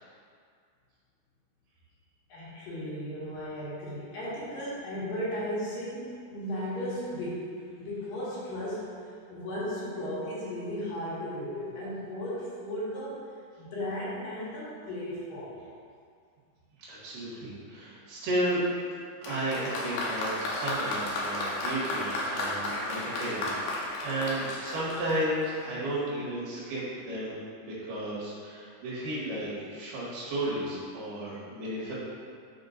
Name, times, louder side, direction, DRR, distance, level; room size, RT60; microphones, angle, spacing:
voice 1, 2.3-7.5 7.8-8.9 9.3-13.2 13.6-15.5, equal, 65° left, -9 dB, 3.4 m, -35 dB
voice 2, 16.9-18.6 19.3-31.9, right 1 dB, 80° right, -8 dB, 4.0 m, -33 dB
Applause, 19.2-25.7, left 1 dB, 85° left, 2.9 m, -33 dB
11.5 x 5.1 x 2.6 m, 2.2 s
omnidirectional pair, 4.5 m